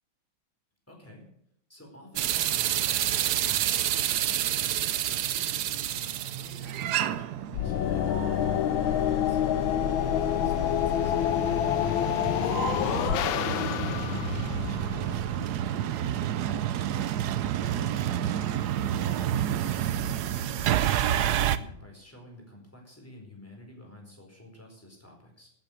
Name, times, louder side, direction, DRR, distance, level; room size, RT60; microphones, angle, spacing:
voice 1, 0.9-1.3 1.7-8.1 8.7-14.1 14.5-17.0 17.8-25.5, left 1 dB, 5° left, 1 dB, 4.4 m, -49 dB
sound 1, 2.2-21.6, right 11 dB, 65° right, 1.0 m, -29 dB
sound 2, 7.5-15.7, left 10 dB, 75° left, 1.6 m, -27 dB
16.5 x 8.8 x 6.5 m, 0.73 s
omnidirectional pair, 2.2 m